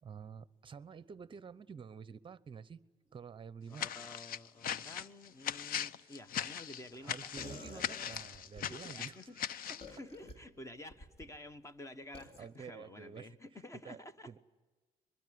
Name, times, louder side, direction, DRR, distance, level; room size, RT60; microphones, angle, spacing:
voice 1, 0.0-2.8 3.1-3.9 7.0-10.0 12.4-13.3 13.8-14.0 14.3-14.4, right 6 dB, 30° right, 0.9 m, -49 dB
sound 1, 3.7-9.9, left 9 dB, 60° left, 0.7 m, -39 dB
voice 2, 3.7-8.1 8.6-14.3, left 1 dB, 20° left, 1.3 m, -51 dB
sound 2, 7.4-8.7 9.8-10.3 10.9-11.3 12.1-12.4, left 2 dB, 35° left, 3.3 m, -49 dB
22.5 x 22.5 x 9.5 m
cardioid pair, 110°, 17 cm